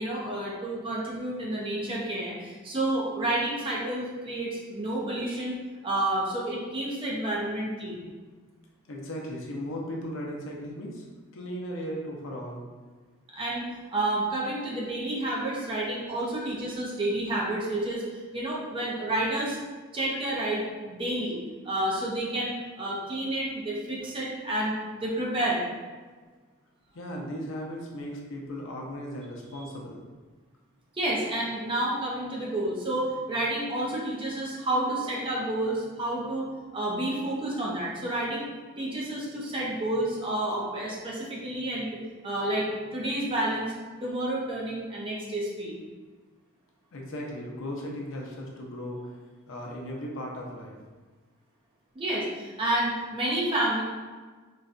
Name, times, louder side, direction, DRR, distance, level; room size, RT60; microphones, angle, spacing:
voice 1, 0.0-5.6 5.8-8.1 13.3-19.6 19.9-21.4 21.6-24.8 25.0-25.6 30.9-36.5 36.7-38.5 38.8-41.9 42.2-43.7 44.0-45.7 52.0-53.8, right 1 dB, 25° right, -5 dB, 0.5 m, -30 dB
voice 2, 8.9-11.1 11.3-12.6 20.1-20.2 26.9-30.0 46.9-49.2 49.5-50.8, equal, 65° left, -1 dB, 0.6 m, -37 dB
3.9 x 2.2 x 2.5 m, 1.4 s
head